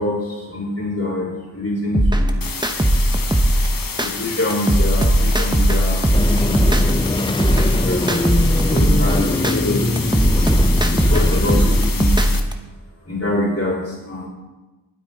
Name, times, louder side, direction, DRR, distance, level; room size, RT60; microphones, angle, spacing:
voice 1, 0.0-2.4 4.0-6.8 7.4-8.3 8.7-10.0 10.9-12.3 13.1-14.3, left 2 dB, 35° left, -3 dB, 5.4 m, -25 dB
sound 1, 1.9-4.1 4.5-7.1 7.4-9.6 10.0-12.5, right 1 dB, 10° right, 1.2 m, -17 dB
sound 2, 2.4-12.4, left 5 dB, 55° left, 1.3 m, -30 dB
sound 3, 6.1-11.9, left 2 dB, 10° left, 0.6 m, -22 dB
18.5 x 8.5 x 4.2 m, 1.1 s
wide cardioid pair, 60°, 40 cm